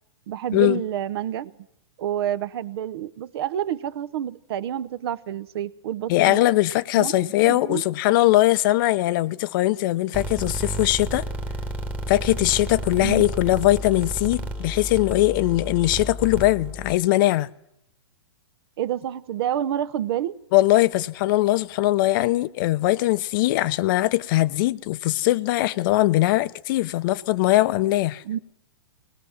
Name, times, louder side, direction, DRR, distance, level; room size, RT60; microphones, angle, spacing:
voice 1, 0.3-1.5 2.0-6.4 7.0-7.8 13.0-13.2 18.8-20.4 28.2-28.4, right 11 dB, 60° right, 0.9 m, -28 dB
voice 2, 6.1-11.2 12.1-17.5 20.5-28.2, left 17 dB, 45° left, 0.7 m, -21 dB
sound 1, 10.1-17.0, right 1 dB, 10° right, 1.4 m, -32 dB
19.5 x 19.0 x 7.2 m
hypercardioid pair, 130°, 15 cm